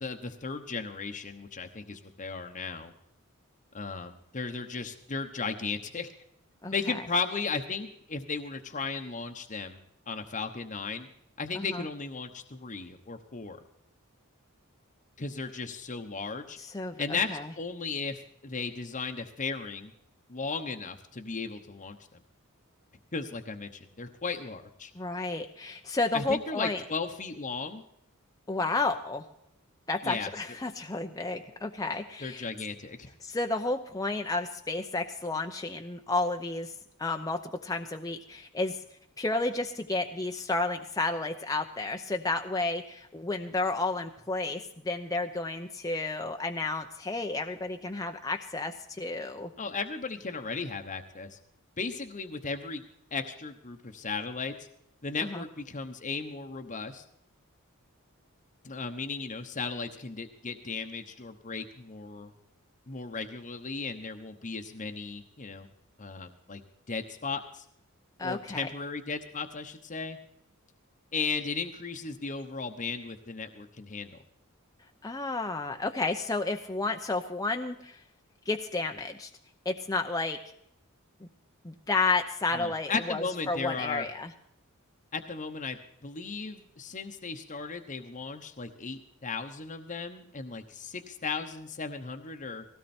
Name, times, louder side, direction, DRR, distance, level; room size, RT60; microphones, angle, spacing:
voice 1, 0.0-2.9 3.7-6.1 6.7-9.8 10.1-11.1 11.4-13.6 15.2-16.6 17.0-17.3 17.6-19.9 20.3-22.2 23.1-24.9 26.1-27.8 30.0-30.3 32.2-33.1 49.6-51.4 51.8-52.8 53.1-54.7 55.0-57.0 58.6-62.3 62.9-65.7 66.0-66.6 66.9-67.6 68.2-70.2 71.1-74.2 82.5-84.1 85.1-92.6, left 4 dB, 35° left, 5 dB, 1.0 m, -36 dB
voice 2, 6.6-6.9 11.5-11.9 16.6-17.5 24.9-26.8 28.5-29.3 29.9-32.5 33.2-36.7 37.0-38.8 39.2-49.5 55.2-55.4 68.2-68.7 75.0-78.0 78.5-79.3 79.6-80.4 81.6-84.3, left 3 dB, 15° left, 4 dB, 0.7 m, -31 dB
19.0 x 16.5 x 4.4 m, 0.75 s
head